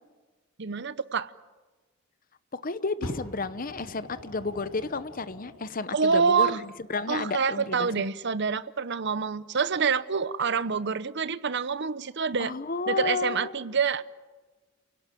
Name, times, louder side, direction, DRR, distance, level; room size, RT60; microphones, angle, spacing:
voice 1, 0.6-1.3 5.9-6.6 7.1-12.5 12.9-14.0, right 5 dB, 55° right, 0.8 m, -26 dB
voice 2, 2.5-7.9 12.4-13.5, left 4 dB, 40° left, 0.9 m, -32 dB
Fire, 3.0-5.8 6.7-6.8, equal, 65° left, 5.2 m, -42 dB
29.0 x 18.0 x 9.3 m
head